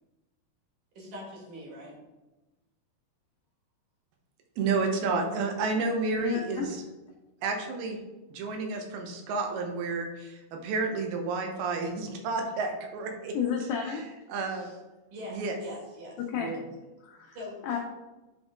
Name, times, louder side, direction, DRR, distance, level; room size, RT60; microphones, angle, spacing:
voice 1, 0.9-2.0 15.1-16.5 17.3-17.8, left 1 dB, 65° right, -3 dB, 3.3 m, -43 dB
voice 2, 4.6-6.7 7.4-8.0 8.3-13.4 14.3-14.7 15.3-15.5 16.4-16.6, right 4 dB, 90° right, 3 dB, 2.8 m, -30 dB
voice 3, 6.2-6.7 13.3-14.1 14.5-14.7 16.2-16.5 17.0-17.4 17.6-17.8, left 7 dB, 85° left, 1 dB, 1.8 m, -32 dB
10.5 x 3.6 x 3.6 m, 1.1 s
omnidirectional pair, 4.4 m